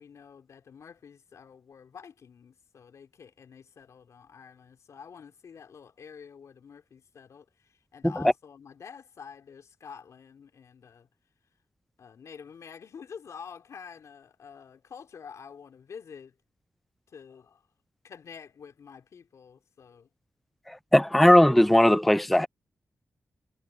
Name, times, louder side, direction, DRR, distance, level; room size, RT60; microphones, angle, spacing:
voice 1, 0.0-11.1 12.0-16.3 17.1-17.6 18.0-20.1, left 6 dB, 80° left, 3.5 m, -48 dB
voice 2, 20.9-22.5, left 1 dB, ahead, 0.3 m, -18 dB
cardioid pair, 85°, 5 cm